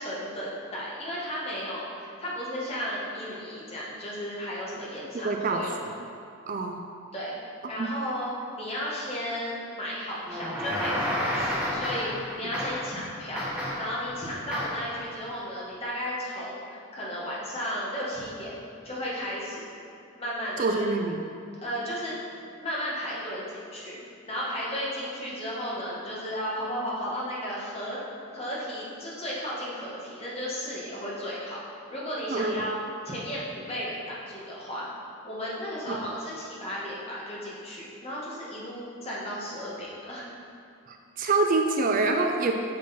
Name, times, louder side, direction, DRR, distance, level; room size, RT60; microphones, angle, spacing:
voice 1, 0.0-5.7 7.1-7.3 7.7-8.3 8.5-18.5 18.8-19.7 20.2-20.9 21.6-22.1 22.6-24.0 24.3-28.0 28.3-31.6 31.9-32.8 33.0-34.8 35.2-40.3, equal, 30° left, -7 dB, 1.6 m, -34 dB
voice 2, 5.1-5.7 6.5-6.8 7.8-7.9 12.4-12.5 20.6-21.2 32.3-32.6 35.9-36.0 40.9-42.5, right 3 dB, 40° right, 3 dB, 0.4 m, -26 dB
sound 1, 10.3-12.2 12.5-13.0 13.4-14.0 14.5-14.9, left 1 dB, 5° right, 1.3 m, -30 dB
7.3 x 6.1 x 4.3 m, 2.5 s
head